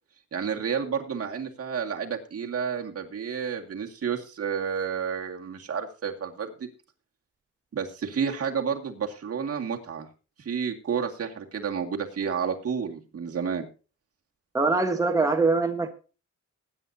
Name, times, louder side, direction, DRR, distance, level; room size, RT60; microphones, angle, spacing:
voice 1, 0.3-6.7 7.7-10.1 10.4-13.7, right 7 dB, 55° right, 1 dB, 2.1 m, -30 dB
voice 2, 14.5-15.9, right 3 dB, 10° right, 3 dB, 1.3 m, -23 dB
20.5 x 9.8 x 2.8 m, 0.34 s
wide cardioid pair, 145°, 29 cm